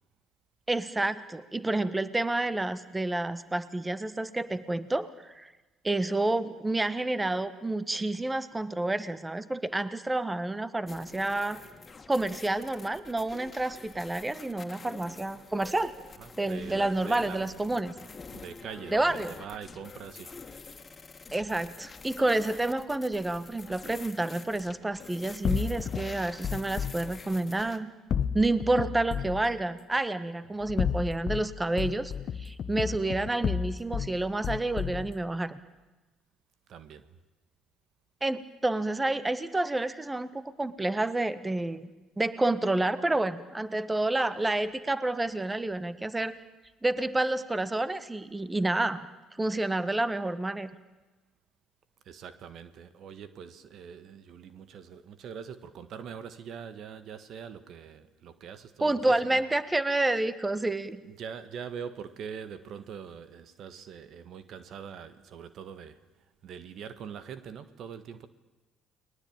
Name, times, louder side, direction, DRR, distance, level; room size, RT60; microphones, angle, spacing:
voice 1, 0.7-5.5 5.8-11.6 12.1-15.9 16.4-17.9 18.9-19.3 21.3-27.9 28.3-32.1 32.4-35.6 38.2-41.9 42.2-46.3 46.8-49.1 49.4-50.7 58.8-61.0, right 2 dB, 15° right, 1.6 m, -29 dB
sound 1, 10.9-27.8, left 4 dB, 30° left, 2.7 m, -47 dB
voice 2, 16.2-17.8 18.3-20.4 30.5-30.6 36.7-37.2 52.0-59.4 61.0-68.3, right 7 dB, 60° right, 1.5 m, -43 dB
sound 2, 25.4-27.0 28.1-29.4 30.6-31.4 31.8-34.1 34.4-35.1, left 7 dB, 55° left, 1.2 m, -31 dB
30.0 x 21.5 x 9.0 m
hypercardioid pair, 60°, 0 cm